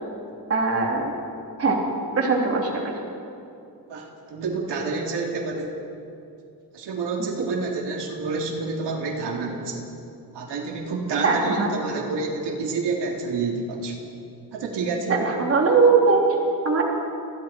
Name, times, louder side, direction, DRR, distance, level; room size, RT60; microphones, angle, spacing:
voice 1, 0.5-1.1 1.6-1.8 2.1-2.9 11.2-11.7 15.1-16.2 16.6-16.8, right 4 dB, 35° right, -1 dB, 3.4 m, -20 dB
voice 2, 3.9-5.8 6.7-9.8 10.3-13.9 14.5-15.2, right 4 dB, 80° right, -1 dB, 3.3 m, -28 dB
29.0 x 21.0 x 4.6 m, 2.6 s
cardioid pair, 150°, 41 cm